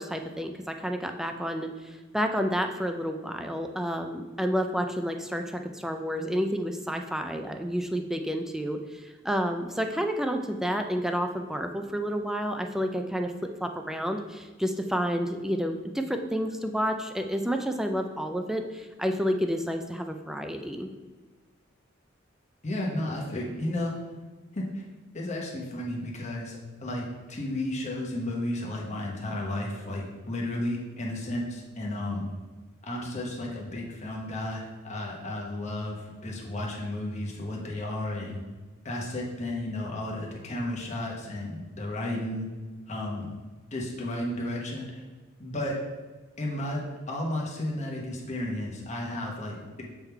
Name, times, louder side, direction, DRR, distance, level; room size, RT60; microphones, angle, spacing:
voice 1, 0.0-13.3 13.6-20.9, equal, ahead, 5 dB, 0.4 m, -30 dB
voice 2, 22.6-23.9 24.5-24.8 25.1-32.3 32.8-38.4 38.8-42.5 42.9-43.3 43.7-45.0 45.4-45.8 46.4-49.8, left 1 dB, 35° left, -2 dB, 1.0 m, -33 dB
7.3 x 3.6 x 4.5 m, 1.3 s
head